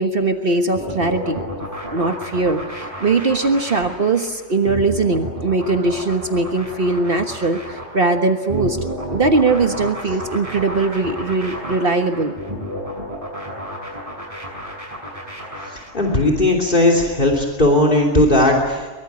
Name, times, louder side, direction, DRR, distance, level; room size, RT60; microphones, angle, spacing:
voice 1, 0.0-8.8 9.1-12.3, right 3 dB, 50° right, 6 dB, 1.5 m, -20 dB
sound 1, 0.8-16.2, equal, 30° right, 6.5 m, -31 dB
voice 2, 15.7-18.9, left 1 dB, 45° left, 3 dB, 3.3 m, -17 dB
23.5 x 23.0 x 9.6 m, 1.3 s
omnidirectional pair, 1.2 m